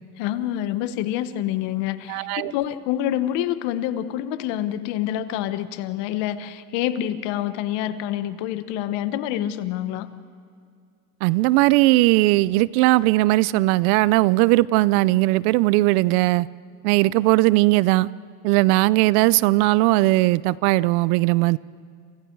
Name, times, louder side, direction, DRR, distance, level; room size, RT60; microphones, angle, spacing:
voice 1, 0.2-10.1, left 12 dB, 65° left, 12 dB, 1.4 m, -27 dB
voice 2, 2.1-2.5 11.2-16.5 16.8-18.1 18.4-21.6, right 20 dB, 70° right, 21 dB, 0.7 m, -18 dB
28.5 x 28.0 x 4.7 m, 2.3 s
supercardioid pair, 120°, 46 cm